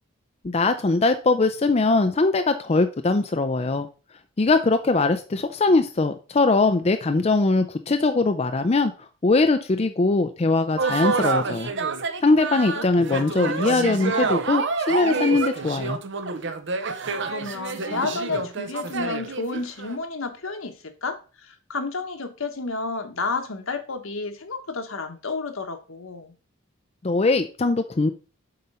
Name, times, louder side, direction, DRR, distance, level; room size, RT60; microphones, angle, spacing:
voice 1, 0.4-3.9 4.4-11.7 12.2-16.0 27.0-28.1, left 3 dB, 30° left, 7 dB, 0.5 m, -21 dB
sound 1, 10.8-20.0, right 4 dB, 60° right, 0.8 m, -28 dB
voice 2, 16.9-26.3, left 3 dB, 75° left, 6 dB, 1.3 m, -31 dB
7.6 x 4.3 x 5.5 m, 0.36 s
head